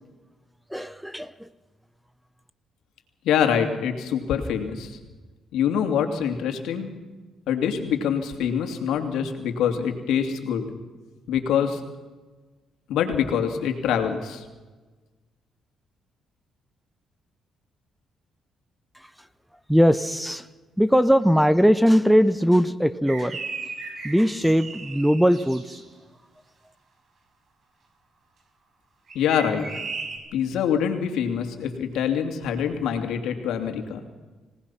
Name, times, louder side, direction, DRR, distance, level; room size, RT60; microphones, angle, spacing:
voice 1, 0.7-1.5 19.7-20.5 20.8-23.4 24.0-25.8, equal, ahead, 15 dB, 0.9 m, -20 dB
voice 2, 3.2-5.0 5.5-6.9 7.5-10.8 11.3-11.8 12.9-14.4 29.1-29.6 30.3-34.0, left 8 dB, 85° left, 5 dB, 2.8 m, -25 dB
sound 1, 23.1-25.8 29.1-30.2, right 4 dB, 50° right, 5.2 m, -36 dB
26.5 x 18.5 x 5.8 m, 1.3 s
cardioid pair, 90°, 0 cm